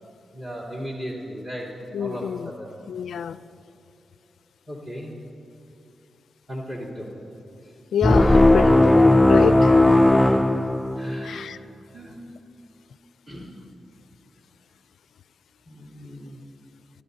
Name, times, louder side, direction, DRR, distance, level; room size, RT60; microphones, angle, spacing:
voice 1, 0.3-1.7 2.0-2.7 4.7-5.1 6.5-7.2 11.0-11.4 11.9-12.2 13.3-13.5 15.6-16.4, equal, 30° right, -7 dB, 3.2 m, -36 dB
voice 2, 1.9-2.5 2.9-3.4 7.9-10.2 11.2-11.6, left 8 dB, 80° left, 14 dB, 0.4 m, -27 dB
sound 1, 8.0-11.4, left 1 dB, 5° left, 0.4 m, -16 dB
29.5 x 12.5 x 2.8 m, 2.8 s
wide cardioid pair, 115°, 0 cm